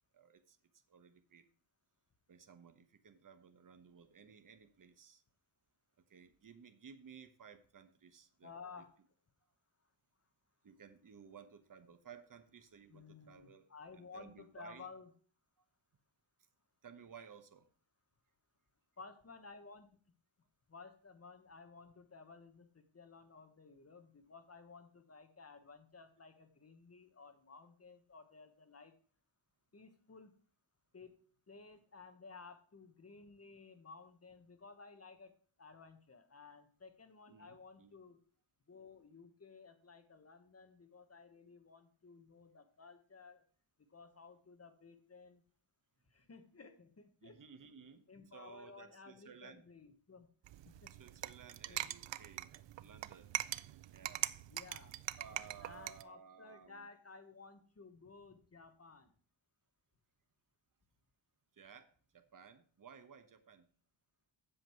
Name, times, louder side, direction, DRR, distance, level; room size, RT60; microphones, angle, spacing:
voice 1, 0.1-0.6 0.9-1.4 2.3-5.2 6.1-8.5 10.6-13.7 14.0-14.9 16.8-17.7 37.3-37.9 47.2-48.0 48.3-49.6 50.9-52.5 52.8-53.4 53.9-54.2 55.2-56.9 61.5-61.9 62.1-63.7, right 7 dB, 40° right, 9 dB, 1.1 m, -57 dB
voice 2, 8.4-8.9 12.9-15.1 19.0-19.9 20.7-28.9 29.7-30.3 30.9-31.2 31.5-35.3 35.6-38.2 38.7-43.4 43.9-45.4 46.1-47.4 48.1-50.3 50.6-50.9 51.7-51.9 54.5-54.9 55.6-59.1, left 4 dB, 30° left, 8 dB, 1.3 m, -56 dB
sound 1, 50.4-56.0, right 13 dB, 70° right, 0.5 m, -42 dB
7.8 x 7.6 x 4.6 m, 0.43 s
wide cardioid pair, 120°, 47 cm